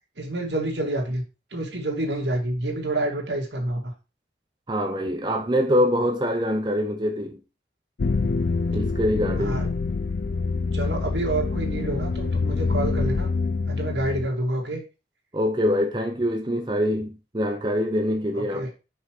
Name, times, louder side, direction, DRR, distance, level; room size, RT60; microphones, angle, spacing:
voice 1, 0.2-1.2 1.5-3.9 9.4-9.7 10.7-13.3 13.7-14.8 18.3-18.7, right 1 dB, 80° right, 2.4 m, -28 dB
voice 2, 4.7-7.4 8.7-9.6 15.3-18.7, equal, 25° right, 0.7 m, -24 dB
sound 1, 8.0-14.3, left 4 dB, 65° left, 0.5 m, -26 dB
5.6 x 5.6 x 4.7 m
head